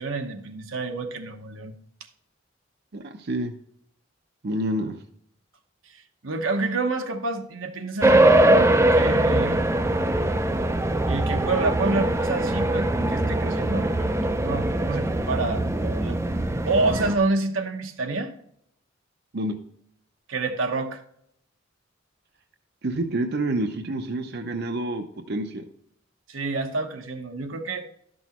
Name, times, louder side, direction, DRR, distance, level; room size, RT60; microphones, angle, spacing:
voice 1, 0.0-1.7 5.9-9.6 11.1-16.2 16.7-18.3 20.3-21.0 26.3-27.9, right 3 dB, 85° right, 5 dB, 1.0 m, -28 dB
voice 2, 2.9-3.5 4.4-5.0 19.3-19.6 22.8-25.6, right 1 dB, 55° right, 5 dB, 0.7 m, -28 dB
sound 1, 8.0-17.2, right 1 dB, 15° right, 0.5 m, -22 dB
12.0 x 6.2 x 3.0 m, 0.69 s
head